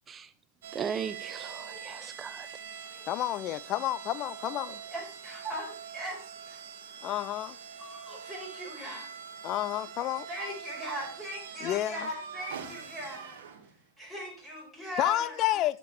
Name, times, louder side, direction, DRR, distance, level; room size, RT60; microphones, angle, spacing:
sound 1, 0.6-13.9, right 7 dB, 55° right, 1.7 m, -44 dB
voice 1, 0.7-2.5, right 7 dB, 20° right, 0.7 m, -37 dB
voice 2, 3.1-4.8 7.0-7.6 9.4-10.3 11.6-12.1 15.0-15.8, left 14 dB, 35° left, 0.5 m, -30 dB
voice 3, 4.5-6.6 7.0-7.1 7.8-9.1 10.3-13.4 14.0-15.4, equal, 5° left, 5.8 m, -40 dB
14.0 x 5.3 x 4.4 m
figure-of-eight pair, 90°, 0 cm